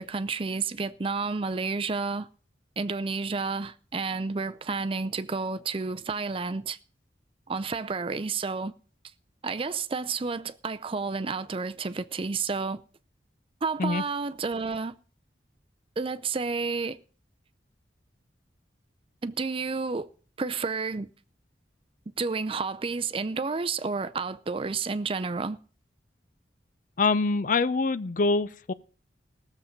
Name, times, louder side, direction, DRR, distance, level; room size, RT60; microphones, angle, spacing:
voice 1, 0.0-2.3 2.8-6.8 7.5-8.7 9.4-12.8 13.6-15.0 16.0-17.0 19.2-20.1 20.4-21.1 22.2-25.6, right 4 dB, 30° right, 0.5 m, -30 dB
voice 2, 27.0-28.7, left 3 dB, 50° left, 0.5 m, -25 dB
17.5 x 7.3 x 5.2 m
head